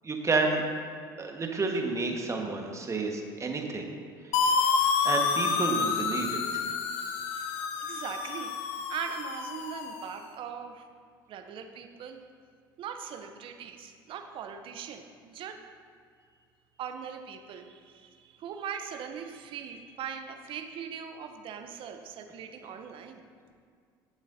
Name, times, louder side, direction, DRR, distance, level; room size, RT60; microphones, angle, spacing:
voice 1, 0.0-0.6 1.2-3.9 5.0-6.6, right 3 dB, 25° right, 2 dB, 1.5 m, -30 dB
sound 1, 4.3-10.1, left 5 dB, 65° left, 0.7 m, -29 dB
voice 2, 6.9-8.6 8.9-10.9 11.3-12.2 12.8-15.6 16.8-23.2, right 7 dB, 50° right, 6 dB, 0.8 m, -40 dB
16.0 x 7.2 x 2.7 m, 2.1 s
hypercardioid pair, 60°, 11 cm